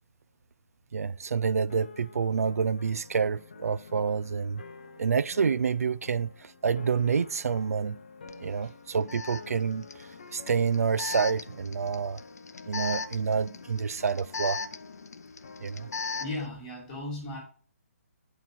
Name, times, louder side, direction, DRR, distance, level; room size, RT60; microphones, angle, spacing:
voice 1, 0.9-4.6 5.0-8.0 8.4-12.2 12.7-14.6 15.6-15.9, right 6 dB, 70° right, 0.4 m, -28 dB
sound 1, 1.6-16.4, left 4 dB, 35° left, 0.6 m, -49 dB
Alarm, 8.3-8.4 9.1-16.5, left 4 dB, 90° left, 0.6 m, -38 dB
voice 2, 16.2-17.4, left 2 dB, 10° left, 1.5 m, -36 dB
8.9 x 4.6 x 4.1 m
hypercardioid pair, 180°, 8 cm